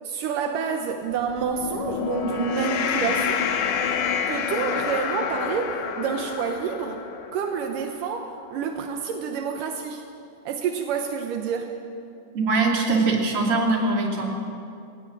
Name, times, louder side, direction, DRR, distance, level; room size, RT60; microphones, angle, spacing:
voice 1, 0.0-3.5 4.3-7.0 7.3-10.1 10.5-11.8, right 6 dB, 80° right, 4 dB, 1.9 m, -28 dB
sound 1, 1.3-7.9, left 7 dB, 70° left, 3.3 m, -28 dB
voice 2, 12.3-14.4, right 3 dB, 35° right, -1 dB, 3.2 m, -22 dB
19.0 x 19.0 x 7.6 m, 2.5 s
omnidirectional pair, 5.2 m